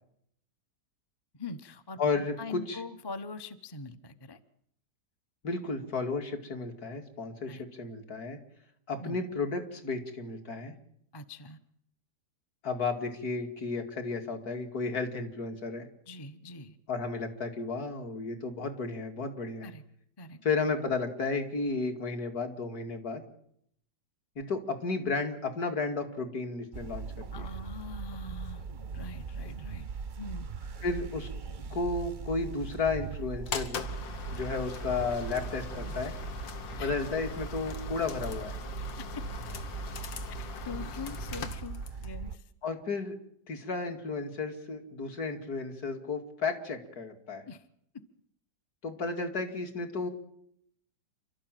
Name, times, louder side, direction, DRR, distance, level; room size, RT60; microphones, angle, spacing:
voice 1, 1.4-4.4 7.5-7.6 9.0-9.2 11.1-11.6 16.1-16.8 19.6-19.8 20.2-20.4 27.3-28.7 28.9-29.9 30.2-30.5 36.8-36.9 40.4-42.4 47.5-47.6, left 3 dB, 20° left, 10 dB, 0.7 m, -43 dB
voice 2, 2.0-2.8 5.4-8.4 8.9-10.7 12.6-15.9 16.9-19.7 20.4-23.2 24.4-27.5 30.8-31.3 31.7-33.8 34.3-36.1 36.8-38.6 42.6-43.2 43.5-47.4 48.8-50.1, left 4 dB, 55° left, 5 dB, 2.8 m, -33 dB
Portal Idle, 26.7-42.4, right 5 dB, 35° right, 0.8 m, -40 dB
sound 1, 33.5-42.2, left 4 dB, 85° left, 2.2 m, -41 dB
28.0 x 13.0 x 9.1 m, 0.72 s
omnidirectional pair, 2.0 m